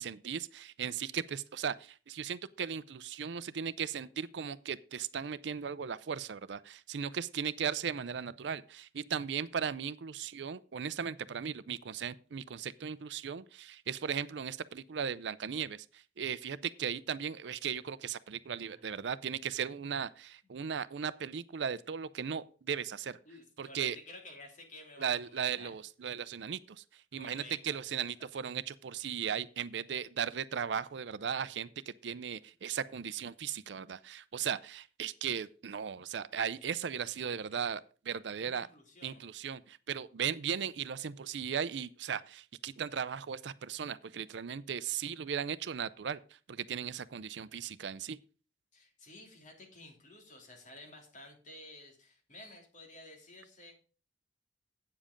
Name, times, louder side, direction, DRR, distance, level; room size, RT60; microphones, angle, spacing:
voice 1, 0.0-23.2 23.6-24.0 25.0-38.7 39.0-48.2, right 7 dB, 75° right, 0.5 m, -37 dB
voice 2, 23.2-25.7 27.1-27.6 38.4-39.2 48.7-53.8, left 1 dB, 45° left, 3.0 m, -52 dB
8.7 x 7.4 x 5.1 m
head